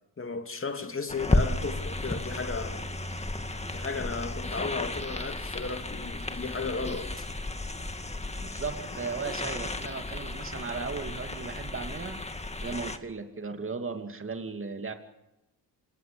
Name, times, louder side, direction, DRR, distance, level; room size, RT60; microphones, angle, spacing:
voice 1, 0.2-2.8 3.5-7.3, left 4 dB, 30° left, 2.7 m, -35 dB
sound 1, 1.1-13.0, left 2 dB, 15° left, 2.0 m, -33 dB
voice 2, 8.4-12.2 12.6-14.9, right 4 dB, 30° right, 2.6 m, -36 dB
27.5 x 20.0 x 7.0 m
cardioid pair, 95°, 40 cm